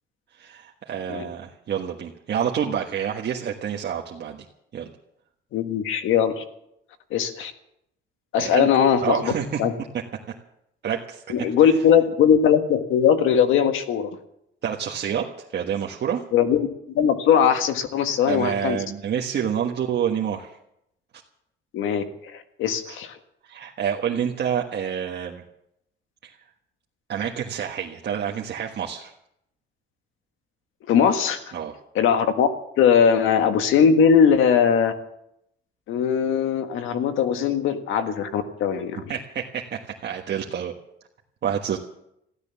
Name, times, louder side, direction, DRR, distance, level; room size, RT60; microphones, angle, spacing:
voice 1, 0.3-4.4 4.7-4.9 8.4-8.7 9.0-9.6 9.9-10.0 10.8-12.0 14.6-15.3 15.5-16.2 17.9-20.6 22.8-23.0 23.4-25.4 26.2-26.3 27.1-29.1 31.3-31.7 33.8-33.9 39.1-40.7 41.4-41.8, right 8 dB, 60° right, 0 dB, 1.5 m, -28 dB
voice 2, 5.5-6.4 7.1-7.5 8.3-9.3 9.6-9.7 11.3-14.1 16.3-18.8 21.7-23.2 30.8-31.5 31.9-32.5 32.8-34.9 35.9-39.0, left 7 dB, 85° left, 8 dB, 1.6 m, -20 dB
15.0 x 12.5 x 7.1 m, 0.78 s
cardioid pair, 90°, 20 cm